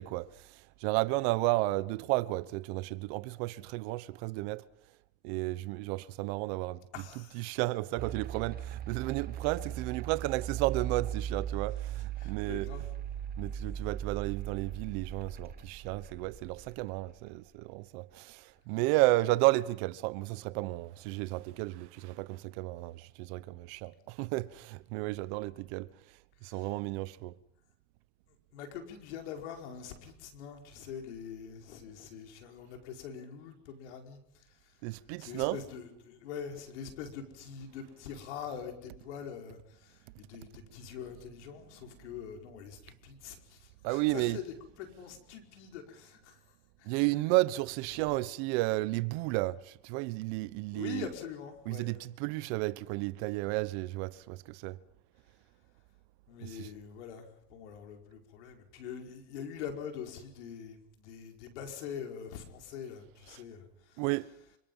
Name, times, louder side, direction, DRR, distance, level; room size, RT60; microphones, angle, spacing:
voice 1, 0.0-4.6 5.2-6.8 7.3-12.7 13.4-25.9 26.4-27.3 34.8-35.6 43.8-44.4 46.8-51.1 51.7-54.8 56.4-56.7 64.0-64.3, right 20 dB, 70° right, 1.2 m, -32 dB
voice 2, 6.9-7.5 12.0-12.9 26.4-26.7 28.3-34.8 35.2-46.4 46.8-47.0 50.7-51.9 56.3-64.0, left 7 dB, 85° left, 5.1 m, -44 dB
sound 1, 8.0-17.1, right 10 dB, 25° right, 1.5 m, -38 dB
26.5 x 26.0 x 5.7 m
supercardioid pair, 115°, 34 cm